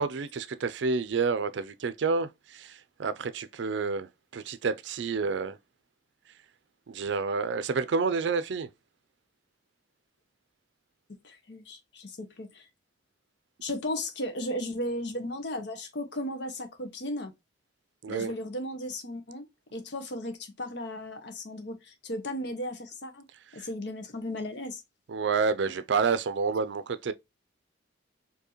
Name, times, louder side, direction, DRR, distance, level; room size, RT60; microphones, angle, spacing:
voice 1, 0.0-5.6 6.9-8.7 18.0-18.3 25.1-27.1, right 5 dB, 75° right, 0.4 m, -29 dB
voice 2, 11.2-12.6 13.6-17.3 18.1-19.5 19.7-23.3 23.5-24.8, left 1 dB, 65° left, 0.9 m, -35 dB
4.6 x 2.7 x 3.0 m
head